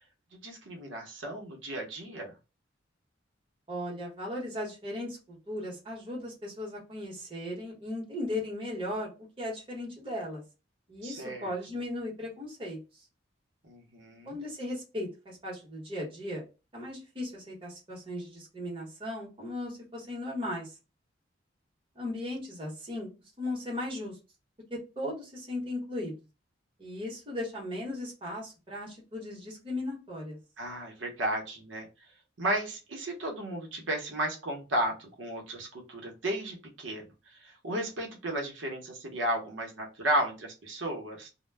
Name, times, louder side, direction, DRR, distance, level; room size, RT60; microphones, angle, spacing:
voice 1, 0.3-2.3 11.0-11.5 13.7-14.4 30.6-31.9 32.4-37.0 37.4-41.3, right 1 dB, 85° right, 1 dB, 0.8 m, -34 dB
voice 2, 3.7-10.4 10.9-12.8 14.3-16.4 16.7-20.8 21.9-23.1 23.4-24.2 24.7-26.1 26.8-30.4, left 1 dB, 25° right, -3 dB, 1.0 m, -37 dB
2.1 x 2.1 x 3.2 m, 0.29 s
head